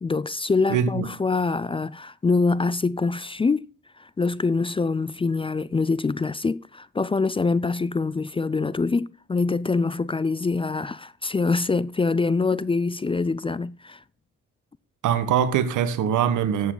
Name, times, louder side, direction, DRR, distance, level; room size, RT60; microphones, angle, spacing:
voice 1, 0.0-3.7 4.0-14.0, left 4 dB, 20° left, 0.4 m, -24 dB
voice 2, 0.7-1.1 15.0-16.7, right 8 dB, 80° right, 1.5 m, -22 dB
13.5 x 8.2 x 3.9 m
cardioid pair, 90°, 30 cm